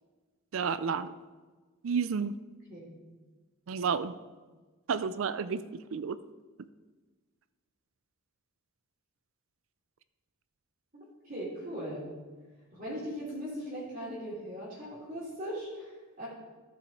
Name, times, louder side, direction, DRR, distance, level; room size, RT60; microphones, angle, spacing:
voice 1, 0.5-1.1 1.8-2.4 3.7-4.2 4.9-5.6 5.9-6.2, right 6 dB, 65° right, 14 dB, 0.4 m, -31 dB
voice 2, 10.9-12.1 12.7-16.3, equal, 40° right, -7 dB, 2.9 m, -39 dB
14.0 x 5.6 x 4.3 m, 1.3 s
head